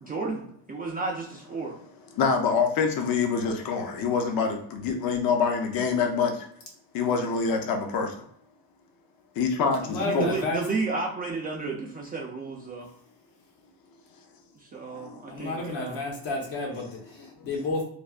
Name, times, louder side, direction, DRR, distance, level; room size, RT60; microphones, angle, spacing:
voice 1, 0.0-1.8 10.0-12.9 14.6-16.0, right 3 dB, 20° right, -2 dB, 0.3 m, -32 dB
voice 2, 2.2-6.4 6.9-8.1 9.4-10.3 14.9-15.5, left 5 dB, 50° left, 3 dB, 0.6 m, -26 dB
voice 3, 9.8-10.6 15.3-17.8, left 2 dB, 70° left, -1 dB, 1.2 m, -31 dB
3.2 x 2.1 x 2.4 m, 0.67 s
cardioid pair, 110°, 48 cm